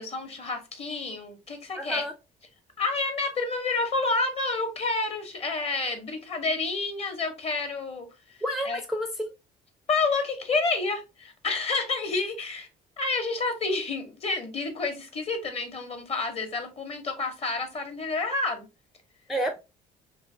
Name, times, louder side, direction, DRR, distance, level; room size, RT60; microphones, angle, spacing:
voice 1, 0.0-2.0 2.8-8.4 8.6-8.8 9.9-12.7 13.0-18.7, left 3 dB, 35° left, 0.9 m, -29 dB
voice 2, 1.8-2.1 8.4-9.3 19.3-19.6, equal, ahead, 0.4 m, -30 dB
3.2 x 2.7 x 2.6 m
cardioid pair, 110°, 17 cm